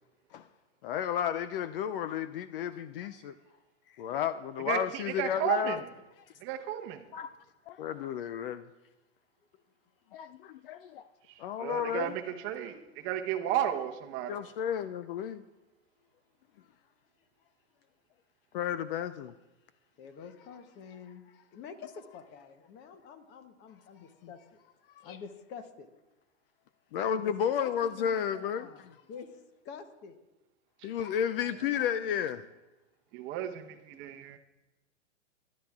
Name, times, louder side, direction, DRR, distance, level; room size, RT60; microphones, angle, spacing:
voice 1, 0.8-3.3 4.0-5.8 7.1-7.3 7.7-8.6 10.1-11.0 11.4-12.2 14.3-15.4 18.5-19.3 25.0-25.2 26.9-29.0 30.8-32.4, left 9 dB, 50° left, 0.4 m, -32 dB
voice 2, 4.7-5.8 6.4-7.0 11.6-14.4 33.1-34.4, right 11 dB, 30° right, 0.8 m, -33 dB
voice 3, 20.0-21.2 21.5-24.4 25.0-25.9 27.0-29.3 29.6-30.2, left 6 dB, 30° left, 0.9 m, -47 dB
21.5 x 10.5 x 2.4 m
hypercardioid pair, 130°, 37 cm